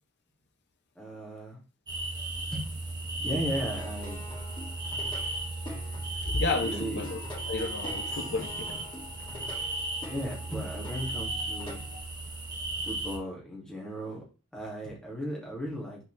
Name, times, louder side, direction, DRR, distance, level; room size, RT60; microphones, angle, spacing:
voice 1, 1.0-1.6 2.5-2.6 3.2-4.2 6.6-7.0 10.1-11.8 12.9-14.2 14.5-16.0, equal, 5° left, 2.4 m, -36 dB
sound 1, 1.9-13.2, right 2 dB, 20° right, 1.5 m, -35 dB
Plucked string instrument, 3.8-12.0, left 2 dB, 20° left, 3.0 m, -45 dB
voice 2, 6.2-8.9, left 3 dB, 50° left, 0.8 m, -32 dB
6.1 x 4.6 x 3.4 m
head